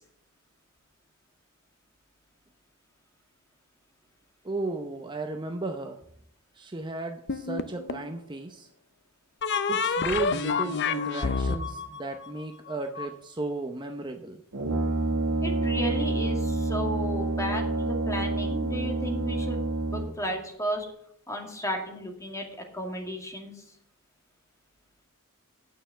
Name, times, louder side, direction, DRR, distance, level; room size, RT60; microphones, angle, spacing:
voice 1, 4.4-6.0 6.6-8.7 9.7-14.4, right 3 dB, 20° right, 4 dB, 0.7 m, -34 dB
sound 1, 7.3-8.1 9.4-13.1, left 5 dB, 55° left, 0.7 m, -28 dB
Brass instrument, 14.5-20.3, right 2 dB, 90° right, 1.6 m, -28 dB
voice 2, 15.4-19.6 19.9-20.9 21.3-22.5 22.7-23.6, equal, 15° left, 2 dB, 2.3 m, -34 dB
9.2 x 6.8 x 7.5 m, 0.71 s
head